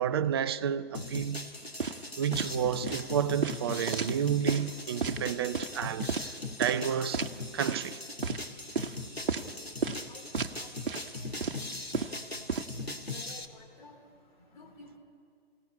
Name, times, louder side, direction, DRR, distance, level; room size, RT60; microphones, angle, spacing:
voice 1, 0.0-1.4 2.2-6.3 6.6-7.3 7.5-8.0 12.9-13.0, right 9 dB, 25° right, 0.5 m, -30 dB
sound 1, 0.9-13.5, left 2 dB, 85° left, 2.1 m, -40 dB
sound 2, 1.8-2.1 2.3-2.5 2.9-3.1 3.4-4.7 5.0-5.2 5.5-5.7 6.1-6.3 6.6-6.9 7.1-7.3 7.7-7.9 8.2-8.4 8.8-8.9 9.3-9.5 9.8-10.0 10.3-10.6 10.9-11.1 11.4-12.6, right 5 dB, 60° right, 1.1 m, -32 dB
voice 2, 13.1-14.0 14.5-15.0, left 2 dB, 50° left, 3.8 m, -52 dB
28.5 x 17.5 x 9.7 m
figure-of-eight pair, 125°, 30 cm